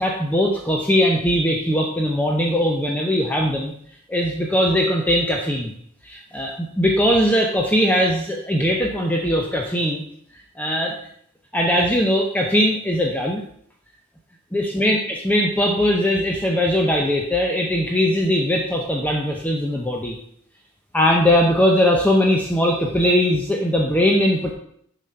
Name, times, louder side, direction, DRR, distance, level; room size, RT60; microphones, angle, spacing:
voice 1, 0.0-3.7 4.1-5.7 6.0-10.0 10.6-10.9 11.5-13.4 14.5-20.1 20.9-24.5, equal, 5° left, 0 dB, 0.7 m, -20 dB
7.6 x 4.9 x 5.7 m, 0.66 s
head